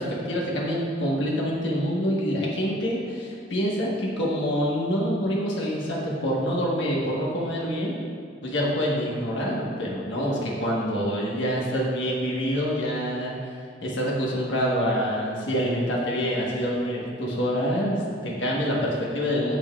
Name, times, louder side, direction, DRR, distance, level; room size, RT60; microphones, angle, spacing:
voice 1, 0.0-8.0 8.4-13.3 13.8-19.6, equal, 85° left, -4 dB, 1.3 m, -26 dB
8.9 x 7.0 x 2.4 m, 2.2 s
head